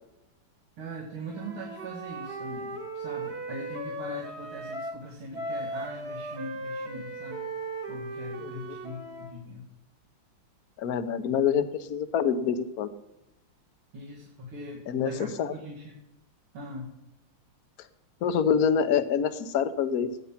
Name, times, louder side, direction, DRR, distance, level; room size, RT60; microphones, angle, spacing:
voice 1, 0.8-7.5 7.9-9.7 13.9-16.0 16.5-16.9, right 1 dB, 85° right, -5 dB, 3.2 m, -41 dB
Wind instrument woodwind instrument, 1.3-5.0 5.3-9.4, right 2 dB, 35° right, 1.5 m, -37 dB
voice 2, 10.8-12.9 14.9-15.1 15.4-15.5 18.2-20.1, left 7 dB, 55° left, 11 dB, 1.1 m, -26 dB
17.5 x 9.1 x 5.9 m, 0.95 s
omnidirectional pair, 2.3 m